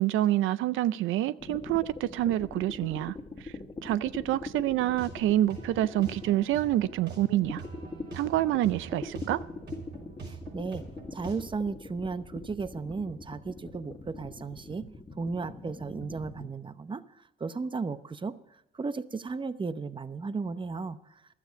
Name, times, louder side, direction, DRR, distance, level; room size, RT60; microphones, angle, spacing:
voice 1, 0.0-3.5 3.8-7.6 8.1-9.4, right 14 dB, 85° right, 0.5 m, -27 dB
sound 1, 1.4-7.0 7.4-16.4, left 3 dB, 25° left, 1.8 m, -42 dB
sound 2, 4.8-11.4, right 4 dB, 60° right, 5.5 m, -45 dB
voice 2, 10.2-10.8 11.1-14.9 15.2-18.4 18.7-21.2, right 4 dB, 25° right, 0.8 m, -35 dB
15.0 x 12.5 x 5.2 m
cardioid pair, 90°, 20 cm